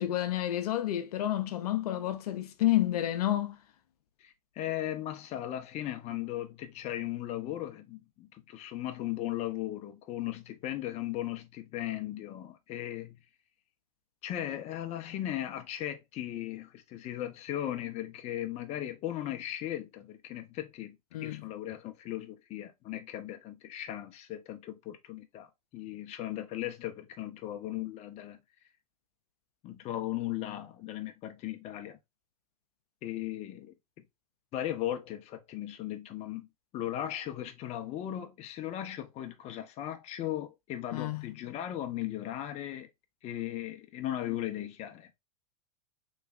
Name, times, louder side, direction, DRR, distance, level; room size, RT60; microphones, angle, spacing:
voice 1, 0.0-3.6 21.1-21.4 40.9-41.2, left 13 dB, 75° left, 0.5 m, -30 dB
voice 2, 4.2-13.2 14.2-20.9 21.2-28.4 29.6-32.0 33.0-33.7 34.5-36.5 36.7-42.9 43.2-45.1, left 13 dB, 35° left, 0.6 m, -37 dB
3.3 x 3.1 x 2.4 m
hypercardioid pair, 115°, 20 cm